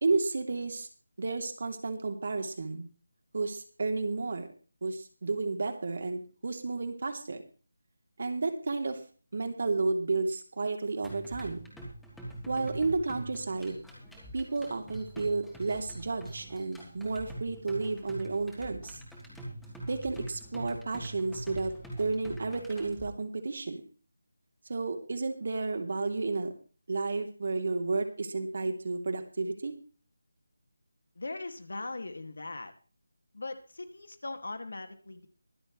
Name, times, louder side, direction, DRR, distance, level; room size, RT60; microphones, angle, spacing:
voice 1, 0.0-0.9 1.2-2.9 3.3-4.5 4.8-7.4 8.2-9.0 9.3-11.6 12.5-13.8 14.3-19.0 19.9-21.7 22.0-23.8 24.7-26.5 26.9-29.7, right 3 dB, 55° right, 5 dB, 3.0 m, -32 dB
sound 1, 11.0-23.0, right 1 dB, 5° left, 3.1 m, -44 dB
voice 2, 31.2-32.7 33.3-35.3, left 2 dB, 65° left, 8 dB, 2.1 m, -40 dB
24.0 x 8.2 x 3.2 m, 0.38 s
figure-of-eight pair, 160°, 0 cm